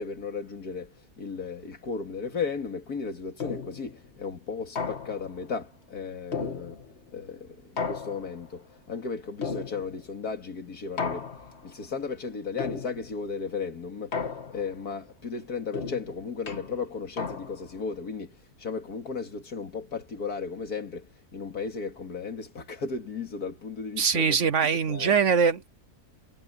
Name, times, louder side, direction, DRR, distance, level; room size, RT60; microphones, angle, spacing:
voice 1, 0.0-6.8 7.1-11.3 11.6-14.2 14.5-24.4 24.9-25.2, left 5 dB, 75° left, 2.8 m, -35 dB
sound 1, 3.4-3.9 4.8-5.4 6.3-7.1 7.8-8.6 9.4-10.1 11.0-11.7 12.6-13.2 14.1-14.8 15.7-17.8, left 5 dB, 45° left, 1.9 m, -35 dB
voice 2, 24.0-25.7, right 6 dB, 55° right, 1.1 m, -23 dB
omnidirectional pair, 1.6 m